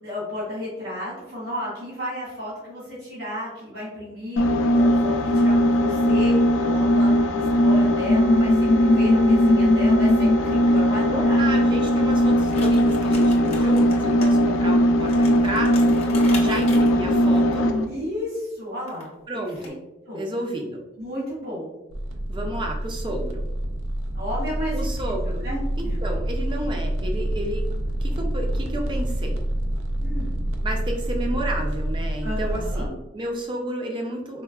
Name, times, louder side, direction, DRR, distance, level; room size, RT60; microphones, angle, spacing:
voice 1, 0.0-11.5 17.9-19.7 20.0-20.3 21.0-21.7 24.1-25.1 25.4-26.0 30.0-30.4 32.2-32.9, left 1 dB, 70° right, -9 dB, 1.5 m, -33 dB
sound 1, 4.4-17.9, equal, 85° left, 0.4 m, -19 dB
voice 2, 11.4-15.9 16.4-17.7 19.3-19.8 20.2-20.8 22.3-23.5 24.7-25.5 25.8-27.7 28.0-29.4 30.6-34.4, right 1 dB, 25° right, 1 dB, 0.4 m, -31 dB
sound 2, 12.5-14.3 14.6-14.7 15.0-17.4 18.8-19.1 19.5-19.7, left 2 dB, 35° left, 0.6 m, -38 dB
sound 3, 21.9-32.9, right 1 dB, 85° right, 0.4 m, -27 dB
4.4 x 2.1 x 2.2 m, 0.97 s
head